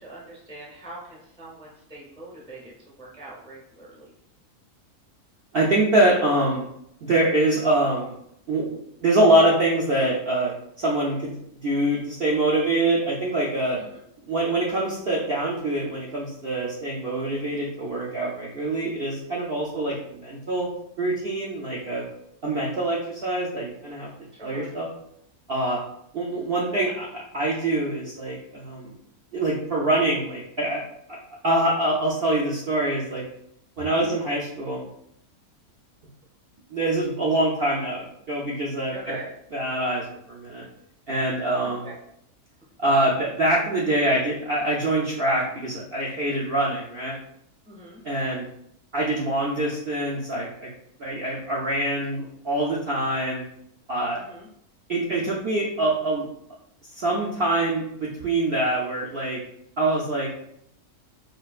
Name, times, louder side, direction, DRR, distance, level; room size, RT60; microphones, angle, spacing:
voice 1, 0.0-4.1 13.8-14.0 19.9-20.0 24.3-24.7 33.9-34.2 38.9-39.3 41.8-42.0 47.6-48.0 54.1-54.5, right 2 dB, 10° left, -4 dB, 0.4 m, -42 dB
voice 2, 5.5-6.6 7.0-8.1 8.5-13.8 14.3-20.7 21.0-22.0 22.4-24.1 24.4-24.9 25.5-25.8 26.1-28.9 29.3-30.8 31.1-31.2 31.4-33.2 33.8-34.9 36.7-39.2 39.5-40.7 41.1-41.9 42.8-47.2 48.0-48.5 48.9-50.7 51.0-53.4 53.9-54.2 54.9-56.3 56.9-59.4 59.8-60.4, right 1 dB, 65° right, -4 dB, 0.6 m, -24 dB
4.3 x 2.4 x 2.4 m, 0.73 s
omnidirectional pair, 1.6 m